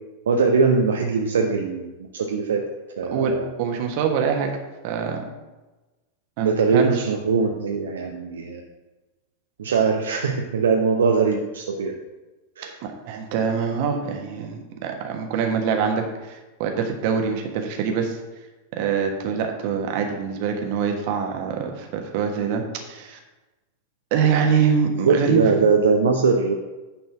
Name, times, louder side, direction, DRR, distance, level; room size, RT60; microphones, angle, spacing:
voice 1, 0.3-2.7 3.0-3.5 6.4-8.6 9.6-11.9 12.6-12.8 25.0-26.5, right 5 dB, 65° right, 1 dB, 0.8 m, -21 dB
voice 2, 3.6-4.5 4.8-5.3 6.4-7.1 12.8-18.2 18.7-23.2 24.1-25.5, right 6 dB, 45° right, 3 dB, 1.4 m, -24 dB
9.7 x 4.3 x 5.8 m, 1.1 s
figure-of-eight pair, 90°, 0 cm